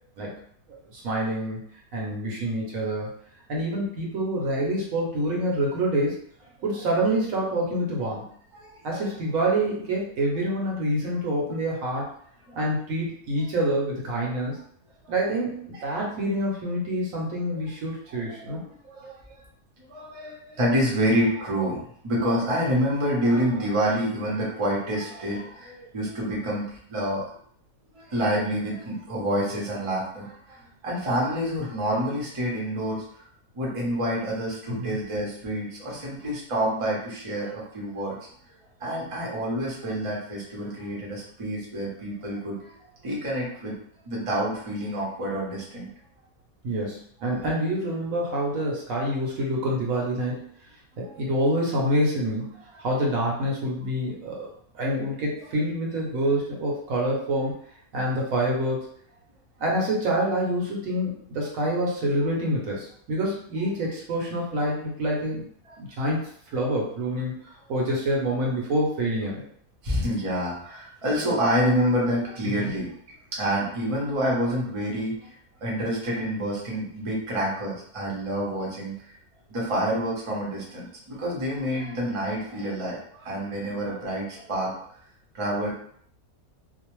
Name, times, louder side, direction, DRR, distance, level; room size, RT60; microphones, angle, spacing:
voice 1, 0.9-1.6 1.9-3.1 3.5-6.2 6.6-8.3 8.8-12.1 12.5-14.6 15.1-18.6 34.8-35.0 46.6-50.5 51.0-52.5 52.8-54.5 54.7-57.5 57.9-58.9 59.6-65.4 65.8-66.2 66.5-69.4 72.4-72.7, right 1 dB, 65° right, -3 dB, 1.0 m, -27 dB
voice 2, 8.5-9.0 12.5-12.6 15.0-15.1 15.7-15.9 18.9-19.2 19.9-27.3 27.9-33.0 33.5-38.2 38.8-42.7 43.0-43.7 44.0-45.9 51.0-51.1 52.7-52.8 69.8-72.9 73.3-75.3 75.6-78.9 79.5-84.7 85.3-85.7, equal, 35° right, -5 dB, 0.5 m, -27 dB
2.6 x 2.0 x 3.0 m, 0.63 s
omnidirectional pair, 1.6 m